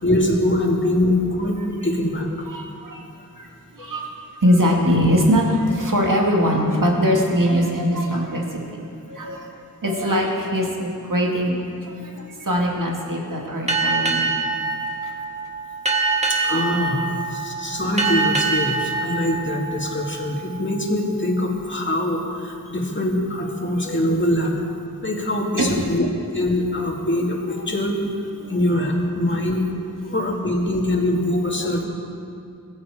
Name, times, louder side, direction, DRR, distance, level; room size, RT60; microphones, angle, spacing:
voice 1, 0.0-2.4 16.3-24.7 25.0-26.1 26.3-28.0 28.5-29.7 30.0-31.8, left 1 dB, 30° left, -1 dB, 2.3 m, -23 dB
voice 2, 2.5-3.0 3.4-3.5 3.8-4.1 4.4-8.8 9.1-9.5 9.8-11.6 12.0-14.3 25.6-25.8 28.4-28.5, equal, 60° right, -1 dB, 2.3 m, -21 dB
Boat Water vehicle, 13.7-20.7, right 4 dB, 20° right, 1.9 m, -25 dB
21.5 x 8.1 x 5.0 m, 2.4 s
wide cardioid pair, 45°, 37 cm